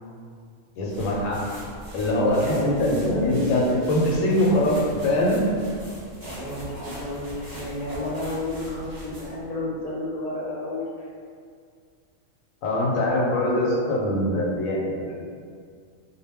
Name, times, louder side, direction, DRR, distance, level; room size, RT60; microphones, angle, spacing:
voice 1, 0.8-1.4 1.9-4.8 5.0-5.4 12.6-15.2, left 1 dB, 90° left, -4 dB, 1.0 m, -23 dB
sound 1, 0.9-9.4, equal, 30° right, 0.4 m, -41 dB
voice 2, 2.5-3.4 6.2-11.1, left 1 dB, 50° left, -6 dB, 0.7 m, -31 dB
2.2 x 2.1 x 3.3 m, 2.1 s
omnidirectional pair, 1.3 m